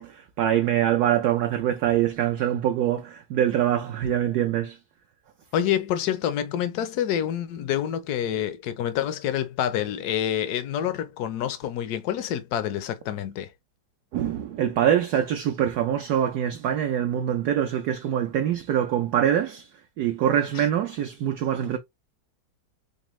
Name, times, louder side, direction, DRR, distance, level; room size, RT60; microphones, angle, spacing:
voice 1, 0.0-4.8 14.1-19.7 20.0-21.8, right 10 dB, 75° right, 0.9 m, -24 dB
voice 2, 5.5-13.5 20.5-20.6, left 10 dB, 70° left, 0.9 m, -27 dB
5.2 x 2.1 x 3.0 m
omnidirectional pair, 2.2 m